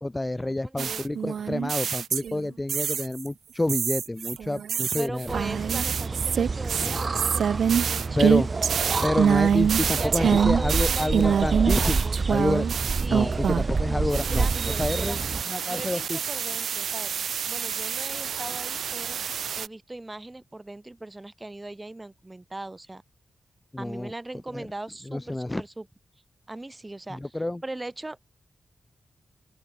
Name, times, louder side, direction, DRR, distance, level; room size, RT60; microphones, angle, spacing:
voice 1, 0.0-5.3 6.8-7.0 8.2-8.5 9.0-12.0 12.3-12.7 13.1-14.5 14.8-15.2 15.5-16.2 23.7-24.1 24.5-24.7 25.1-25.6 27.1-27.6, left 1 dB, 15° left, 0.8 m, -28 dB
voice 2, 0.6-1.1 4.9-8.9 9.3-9.6 10.0-12.2 12.9-13.5 13.9-15.2 15.6-17.1 17.5-19.2 19.5-23.0 23.8-25.8 26.5-27.2 27.6-28.2, right 2 dB, 20° right, 2.9 m, -39 dB
sound 1, 0.8-3.3 3.7-13.8 14.1-19.7, right 7 dB, 90° right, 0.8 m, -26 dB
sound 2, 5.3-15.4, right 4 dB, 45° right, 0.8 m, -28 dB
open air
cardioid pair, 85°, 0 cm